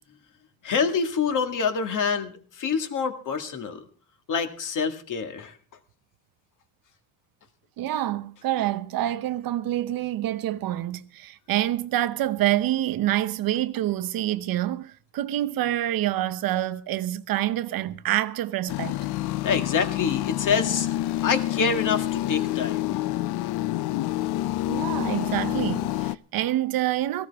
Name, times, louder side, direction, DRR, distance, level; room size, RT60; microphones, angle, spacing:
voice 1, 0.6-3.8 4.3-5.5 19.4-20.9 21.2-22.9, left 6 dB, 50° left, 1.9 m, -26 dB
voice 2, 7.8-19.0 24.7-27.3, right 13 dB, 60° right, 0.8 m, -27 dB
sound 1, 18.7-26.2, left 15 dB, 70° left, 0.6 m, -27 dB
18.0 x 15.0 x 3.5 m
cardioid pair, 145°, 40 cm